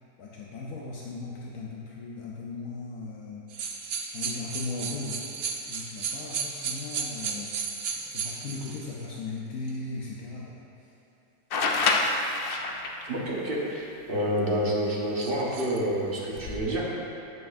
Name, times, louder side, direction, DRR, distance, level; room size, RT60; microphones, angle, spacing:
voice 1, 0.2-3.4 4.1-5.2 5.7-7.5 8.1-10.6, left 3 dB, 75° left, -4 dB, 1.3 m, -37 dB
sound 1, 3.5-8.9 9.7-9.8 15.2-15.8, right 5 dB, 60° right, 0.6 m, -34 dB
sound 2, 11.5-13.0 14.9-15.0 16.2-16.6, left 3 dB, 60° left, 0.6 m, -26 dB
voice 2, 13.0-16.9, equal, 40° right, -4 dB, 1.3 m, -28 dB
9.5 x 8.1 x 2.6 m, 3.0 s
omnidirectional pair, 1.6 m